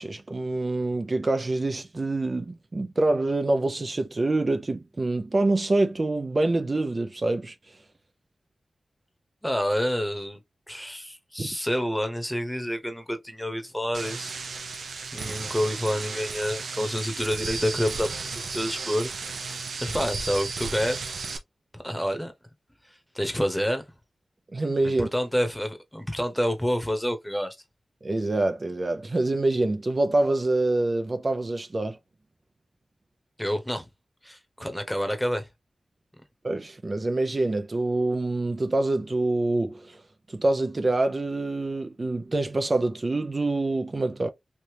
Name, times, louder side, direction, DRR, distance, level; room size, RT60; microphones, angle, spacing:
voice 1, 0.0-7.5 11.4-11.5 24.5-25.1 28.0-32.0 36.4-40.0 40.3-44.3, right 2 dB, 40° right, 0.4 m, -26 dB
voice 2, 9.4-10.4 10.7-14.3 15.1-19.1 19.5-21.2 21.7-22.3 22.9-23.8 24.8-27.6 33.4-33.9 34.2-35.5, equal, 5° left, 0.9 m, -28 dB
sound 1, 13.9-21.4, right 4 dB, 85° right, 0.6 m, -34 dB
3.2 x 2.7 x 2.8 m
cardioid pair, 60°, 0 cm